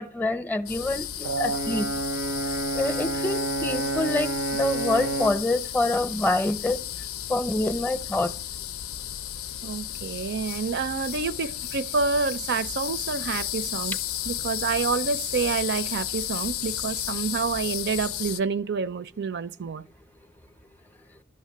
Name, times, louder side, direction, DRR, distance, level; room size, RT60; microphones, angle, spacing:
voice 1, 0.0-1.9 2.7-6.8 7.3-8.3, left 2 dB, 10° left, 0.6 m, -26 dB
sound 1, 0.7-18.4, left 11 dB, 70° left, 0.5 m, -33 dB
Brass instrument, 1.2-5.5, right 3 dB, 85° right, 0.7 m, -29 dB
voice 2, 9.6-14.0 14.2-19.8, right 5 dB, 50° right, 0.5 m, -28 dB
12.5 x 6.5 x 8.3 m
head